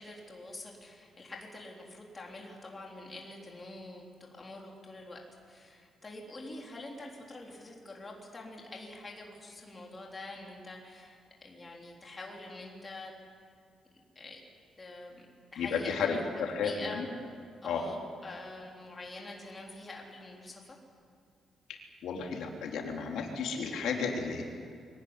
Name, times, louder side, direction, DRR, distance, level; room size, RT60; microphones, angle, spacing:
voice 1, 0.0-5.2 5.5-13.1 14.2-14.4 14.8-15.3 15.5-17.0 17.6-20.8, left 2 dB, 20° left, -1 dB, 3.6 m, -46 dB
voice 2, 15.6-17.1 17.6-17.8 22.0-24.4, left 5 dB, 85° left, 1 dB, 3.5 m, -33 dB
23.5 x 18.5 x 9.8 m, 2.3 s
cardioid pair, 180°, 0 cm